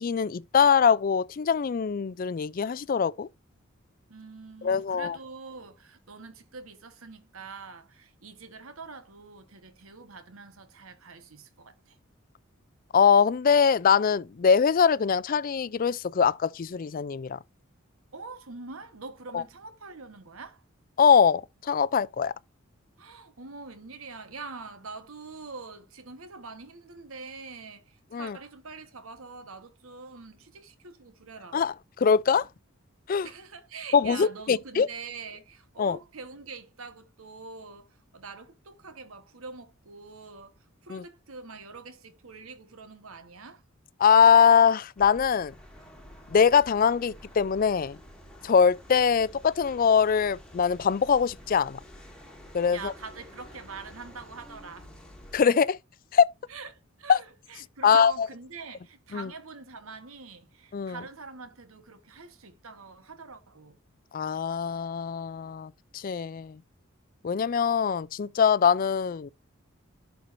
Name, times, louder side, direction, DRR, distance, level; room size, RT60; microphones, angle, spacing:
voice 1, 0.0-3.3 4.6-5.2 12.9-17.4 19.3-19.4 21.0-22.3 28.1-28.4 31.5-32.5 33.1-33.3 33.9-34.9 35.8-36.0 40.9-41.0 44.0-45.5 46.3-48.0 48.4-51.8 52.5-52.9 55.3-55.8 56.1-56.2 57.1-57.2 57.8-58.3 59.1-59.3 60.7-61.0 64.1-66.6 67.2-69.3, left 6 dB, 40° left, 0.4 m, -22 dB
voice 2, 4.1-12.0 18.1-20.6 23.0-31.6 33.2-37.9 38.1-43.6 52.7-55.0 56.5-63.8, right 4 dB, 85° right, 1.2 m, -44 dB
sound 1, 45.0-55.4, equal, 5° left, 1.7 m, -49 dB
11.0 x 4.5 x 2.6 m
head